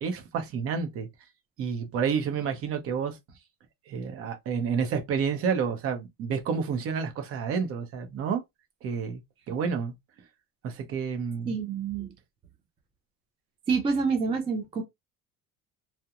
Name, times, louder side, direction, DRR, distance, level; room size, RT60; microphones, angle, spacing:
voice 1, 0.0-1.1 1.6-3.2 3.9-8.4 8.8-9.2 9.5-9.9 10.6-11.6, right 6 dB, 45° right, 0.7 m, -29 dB
voice 2, 11.5-12.1 13.7-14.8, right 5 dB, 20° right, 0.3 m, -27 dB
2.8 x 2.1 x 2.3 m
cardioid pair, 165°, 32 cm